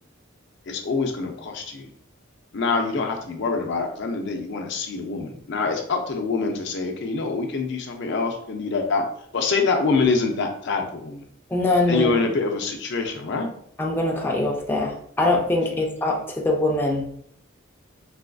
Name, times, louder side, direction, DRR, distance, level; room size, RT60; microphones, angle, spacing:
voice 1, 0.7-1.9 2.5-9.0 9.3-11.3 11.9-13.5 15.7-15.8, left 4 dB, 60° left, 3 dB, 0.5 m, -25 dB
voice 2, 11.5-12.1 13.8-17.0, left 2 dB, 10° left, -1 dB, 0.4 m, -23 dB
4.0 x 2.5 x 2.2 m, 0.67 s
head